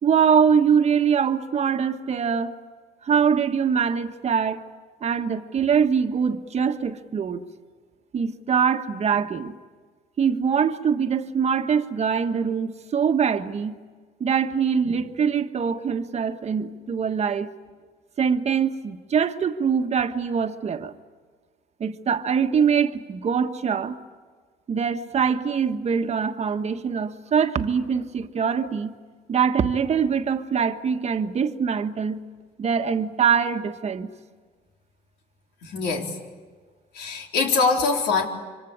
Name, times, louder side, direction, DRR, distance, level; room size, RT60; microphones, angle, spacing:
voice 1, 0.0-2.5 3.0-4.6 5.0-7.4 8.1-9.5 10.2-13.8 14.2-17.5 18.2-20.9 21.8-24.0 24.7-29.0 29.3-32.2 32.6-34.1, right 7 dB, 40° right, 1.4 m, -23 dB
voice 2, 35.6-36.2 36.9-38.3, left 4 dB, 75° left, 3.9 m, -23 dB
25.5 x 25.0 x 8.8 m
cardioid pair, 110°, 17 cm